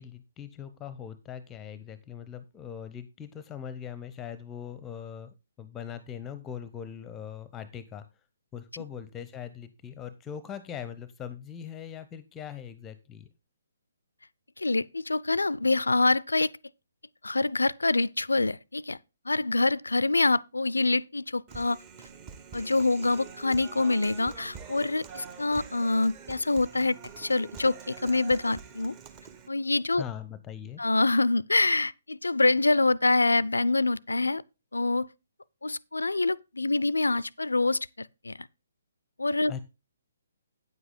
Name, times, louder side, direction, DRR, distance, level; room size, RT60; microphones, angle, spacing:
voice 1, 0.0-8.0 8.5-13.3 30.0-30.8 39.5-39.6, left 8 dB, 15° left, 0.7 m, -41 dB
voice 2, 14.6-16.5 17.2-19.0 19.3-21.8 22.5-29.0 29.5-30.0 30.8-34.4 34.7-35.1 35.6-38.5 39.2-39.5, left 2 dB, 80° left, 0.4 m, -26 dB
Human voice, 21.5-29.5, right 6 dB, 25° right, 1.3 m, -46 dB
9.5 x 8.0 x 3.8 m
figure-of-eight pair, 135°, 0 cm